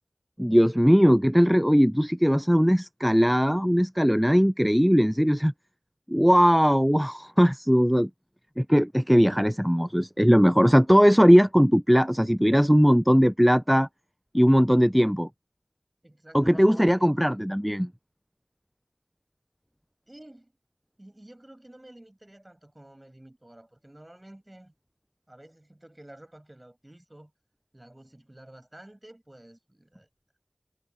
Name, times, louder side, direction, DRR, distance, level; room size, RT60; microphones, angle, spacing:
voice 1, 0.4-5.5 6.1-8.1 8.6-13.9 14.3-15.3 16.3-17.9, equal, 5° right, 0.3 m, -19 dB
voice 2, 16.0-17.1 20.1-20.5 21.0-24.7 25.3-27.3 27.7-30.1, right 1 dB, 25° right, 7.8 m, -51 dB
wide cardioid pair, 50°, 0 cm